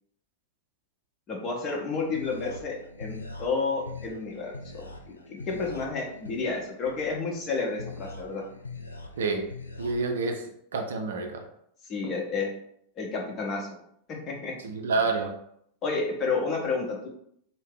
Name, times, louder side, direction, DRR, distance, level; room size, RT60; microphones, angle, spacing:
voice 1, 1.3-4.9 5.3-8.4 11.9-12.5 13.0-13.8 14.1-14.5 15.8-17.1, left 4 dB, 30° left, -1 dB, 0.8 m, -30 dB
sound 1, 1.7-9.9, left 3 dB, 80° left, 0.3 m, -43 dB
voice 2, 9.2-10.4 10.7-11.4 14.6-15.4, right 3 dB, 65° right, 3 dB, 0.4 m, -28 dB
2.6 x 2.1 x 3.8 m, 0.71 s
figure-of-eight pair, 90°, 0 cm